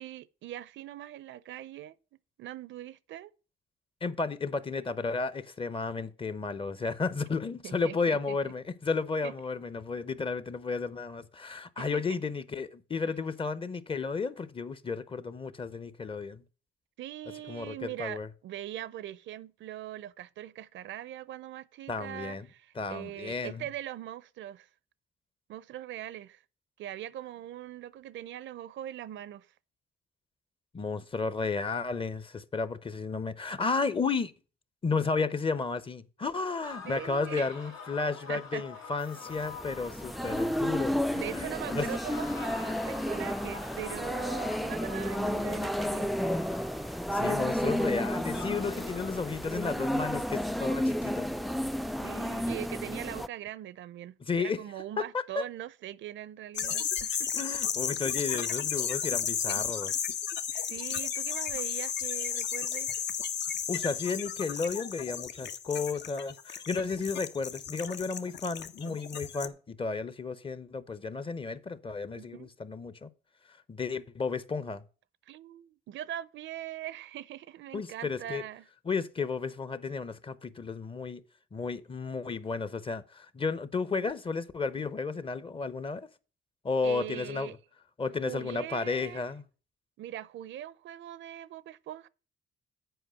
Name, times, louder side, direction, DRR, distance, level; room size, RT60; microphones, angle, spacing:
voice 1, 0.0-2.0 2.4-3.3 7.6-8.4 9.2-9.3 11.8-12.2 13.0-13.1 17.0-24.7 25.5-26.4 26.8-29.5 36.9-37.6 38.3-38.6 41.1-46.1 51.8-57.4 60.5-63.0 72.2-72.5 75.3-78.6 86.8-87.6 88.3-89.2 90.0-92.1, right 12 dB, 70° right, 0.5 m, -41 dB
voice 2, 4.0-16.4 17.5-18.3 21.9-22.5 22.8-23.7 30.7-34.3 34.8-41.9 46.9-51.3 54.2-54.6 55.0-55.4 57.4-59.9 63.7-73.1 73.7-74.8 77.7-78.4 78.9-81.2 81.5-86.1 86.6-87.6 88.0-89.4, left 4 dB, 25° left, 0.7 m, -33 dB
sound 1, 36.6-41.3 41.6-47.5 48.0-49.4, left 5 dB, 85° left, 2.4 m, -46 dB
sound 2, 39.3-53.3, equal, ahead, 0.3 m, -32 dB
sound 3, 56.5-69.5, left 8 dB, 65° left, 0.8 m, -34 dB
7.9 x 4.9 x 6.4 m
cardioid pair, 90°, 20 cm